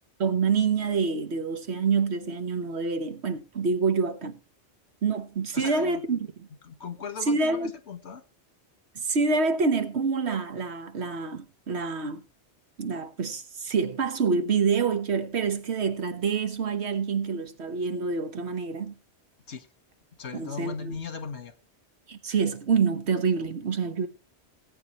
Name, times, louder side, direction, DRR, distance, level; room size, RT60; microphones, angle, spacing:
voice 1, 0.2-4.4 5.0-6.5 7.3-7.7 8.9-12.2 12.8-18.9 20.3-21.0 22.1-24.1, right 5 dB, 70° right, 1.4 m, -27 dB
voice 2, 5.5-6.0 6.6-8.2 19.5-19.7 20.2-21.5, left 5 dB, 70° left, 1.6 m, -38 dB
20.0 x 8.5 x 3.1 m
omnidirectional pair, 1.1 m